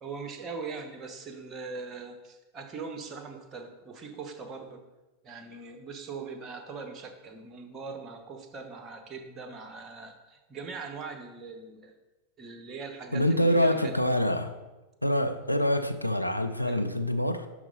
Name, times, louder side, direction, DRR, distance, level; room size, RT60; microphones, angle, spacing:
voice 1, 0.0-4.8 5.2-11.9 12.4-14.2 16.6-17.0, right 4 dB, 25° right, 6 dB, 1.0 m, -41 dB
voice 2, 13.1-14.5 15.0-17.5, equal, 90° left, 7 dB, 0.5 m, -25 dB
11.0 x 4.0 x 3.9 m, 1.1 s
figure-of-eight pair, 90°, 0 cm